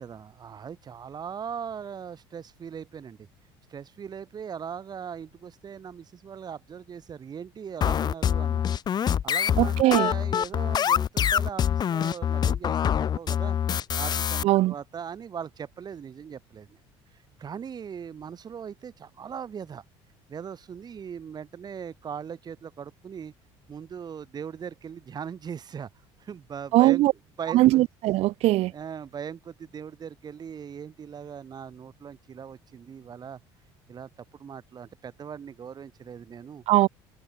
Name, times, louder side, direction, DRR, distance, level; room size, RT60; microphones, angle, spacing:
voice 1, 0.0-3.2 3.7-8.7 9.2-13.6 14.0-16.8 17.4-19.8 20.3-23.3 23.7-25.9 26.2-27.0 27.4-27.6 28.7-33.4 33.9-34.1 34.4-36.6, right 7 dB, 35° right, 3.2 m, -39 dB
sound 1, 7.8-14.4, left 9 dB, 40° left, 0.7 m, -25 dB
voice 2, 9.6-10.1 14.4-14.7 26.7-27.1 27.5-28.7 36.7-36.9, right 17 dB, 65° right, 1.2 m, -20 dB
supercardioid pair, 100°, 11 cm